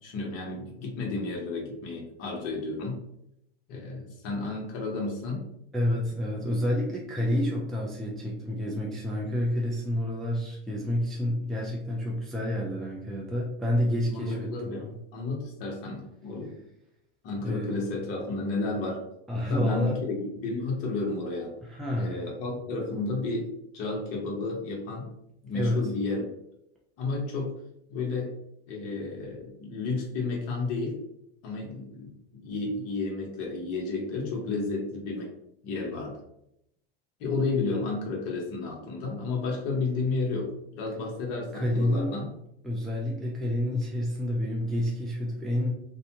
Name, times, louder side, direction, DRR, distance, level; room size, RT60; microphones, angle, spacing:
voice 1, 0.0-3.0 3.7-5.5 14.1-16.5 17.2-19.0 19.5-21.5 22.0-25.1 25.4-26.3 27.0-27.6 27.9-28.3 28.7-31.0 31.4-35.3 35.6-36.2 37.2-42.2, left 3 dB, 55° left, -1 dB, 1.1 m, -32 dB
voice 2, 5.7-15.0 17.4-17.7 19.3-20.0 21.7-22.2 25.5-25.8 41.5-42.2 42.6-45.7, left 1 dB, ahead, -3 dB, 0.3 m, -29 dB
2.6 x 2.2 x 2.8 m, 0.79 s
hypercardioid pair, 105°, 30 cm